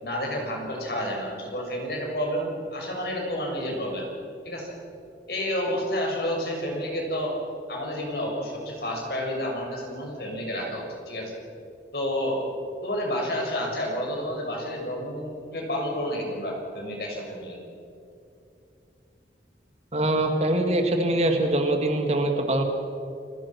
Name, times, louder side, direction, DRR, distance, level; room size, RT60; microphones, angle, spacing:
voice 1, 0.0-4.1 4.4-4.8 5.3-7.3 7.7-11.3 11.9-12.4 12.8-17.6, equal, 60° left, 0 dB, 6.6 m, -30 dB
voice 2, 19.9-22.6, right 1 dB, 35° right, 4 dB, 2.2 m, -23 dB
29.5 x 20.5 x 6.1 m, 2.6 s
head